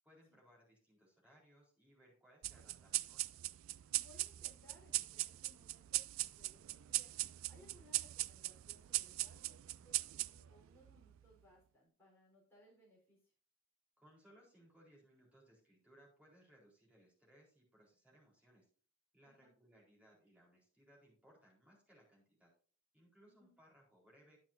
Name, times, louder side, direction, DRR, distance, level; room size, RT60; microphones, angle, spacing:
voice 1, 0.0-3.2 14.0-18.7 19.1-22.5 22.9-24.4, equal, 5° right, -4 dB, 4.1 m, -66 dB
sound 1, 2.4-11.3, right 18 dB, 85° right, 0.3 m, -41 dB
voice 2, 3.9-7.1 7.5-13.3 19.2-19.5 23.2-23.5, left 1 dB, 10° left, -5 dB, 4.3 m, -66 dB
10.5 x 8.9 x 2.7 m, 0.41 s
head